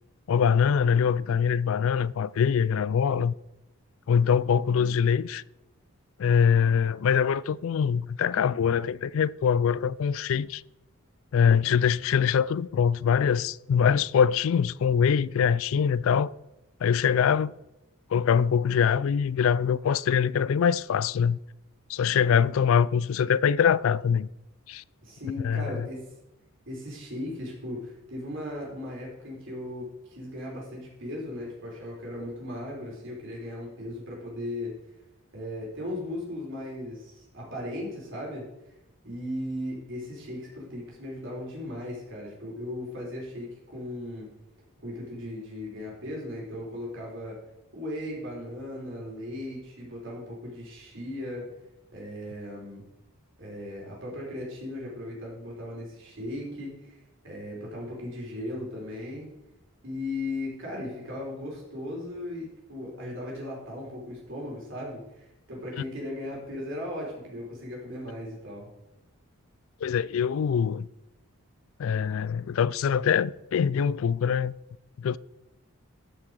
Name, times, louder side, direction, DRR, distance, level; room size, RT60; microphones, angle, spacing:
voice 1, 0.3-3.3 4.1-5.4 6.2-10.6 11.3-16.3 16.8-17.5 18.1-21.4 21.9-24.3 24.7-24.8 25.4-25.9 69.8-70.9 71.8-74.5 75.0-75.2, left 7 dB, 65° left, 0.3 m, -23 dB
voice 2, 4.6-4.9 25.0-26.0 26.7-34.8 35.3-38.5 39.0-44.3 44.8-47.4 47.7-51.5 51.9-52.8 53.4-57.0 57.2-59.3 59.8-68.7, left 1 dB, 55° right, 3.8 m, -37 dB
13.5 x 6.0 x 4.7 m
head